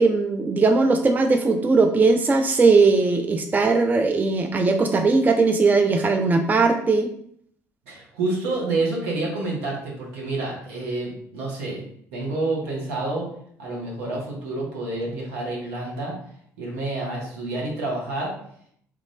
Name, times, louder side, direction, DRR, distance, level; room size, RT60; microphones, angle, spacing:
voice 1, 0.0-7.1, right 3 dB, 20° right, 5 dB, 0.4 m, -19 dB
voice 2, 7.9-11.8 12.1-13.3 13.6-16.1 16.6-18.3, right 2 dB, 80° right, -3 dB, 1.1 m, -28 dB
3.3 x 2.5 x 3.3 m, 0.66 s
hypercardioid pair, 60°, 8 cm